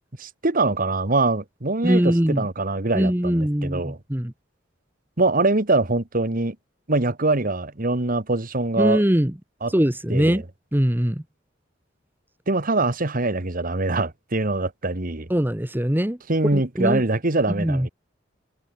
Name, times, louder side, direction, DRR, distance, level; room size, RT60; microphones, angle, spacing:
voice 1, 0.2-4.0 5.2-6.6 6.9-9.0 9.6-9.7 10.1-10.4 12.5-15.3 16.3-17.9, right 2 dB, 50° right, 1.8 m, -23 dB
voice 2, 1.8-2.5 2.9-4.3 8.8-9.3 9.7-10.4 10.7-11.2 15.3-16.2 16.5-17.0 17.6-17.9, equal, 10° right, 1.3 m, -21 dB
head